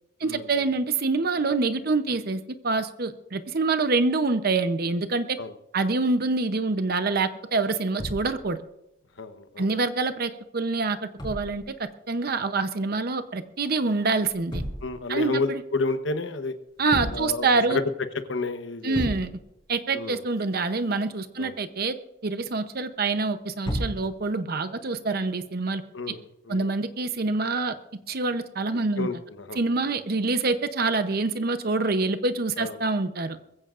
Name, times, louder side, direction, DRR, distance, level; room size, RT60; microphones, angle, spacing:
voice 1, 0.2-5.3 5.7-8.6 9.6-11.6 12.1-14.6 15.1-15.6 16.8-17.8 18.8-19.3 19.7-22.0 22.2-25.8 26.5-27.7 28.1-29.1 29.5-33.4, right 3 dB, 55° right, 10 dB, 0.7 m, -26 dB
sound 1, 8.0-8.6 11.2-11.8 14.2-15.2 16.8-17.5 17.9-18.0 18.4-18.5 18.9-19.6 23.6-24.3 25.4-25.7, equal, 25° left, 4.4 m, -33 dB
voice 2, 9.2-9.7 14.8-16.6 17.1-17.8 18.3-19.0 19.9-20.2 21.4-21.5 25.9-26.7 29.0-29.6 32.6-32.8, left 3 dB, 75° left, 9 dB, 1.1 m, -30 dB
22.0 x 15.5 x 2.5 m, 0.84 s
head